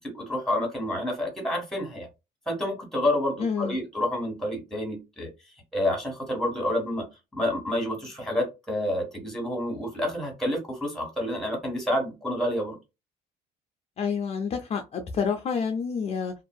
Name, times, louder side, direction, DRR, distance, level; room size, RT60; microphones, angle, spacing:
voice 1, 0.1-2.1 2.5-5.3 5.7-7.0 7.3-12.8, left 1 dB, ahead, 1.4 m, -28 dB
voice 2, 3.4-3.8 14.0-16.3, left 6 dB, 40° left, 0.4 m, -28 dB
2.6 x 2.5 x 2.3 m
cardioid pair, 110°, 17 cm